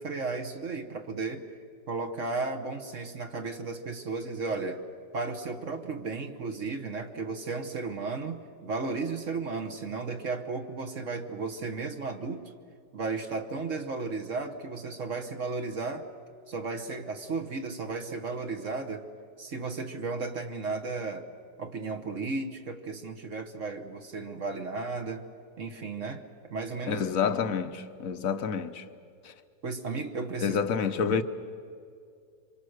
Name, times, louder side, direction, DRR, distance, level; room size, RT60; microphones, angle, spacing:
voice 1, 0.0-1.4 1.9-4.8 5.1-12.5 12.9-16.1 16.5-19.1 19.4-21.3 21.6-25.3 25.6-27.0 29.6-30.6 31.1-31.2, right 3 dB, 45° right, 1.4 m, -34 dB
voice 2, 26.9-28.8 30.4-31.2, left 6 dB, 55° left, 1.2 m, -28 dB
27.0 x 25.0 x 6.5 m
omnidirectional pair, 2.0 m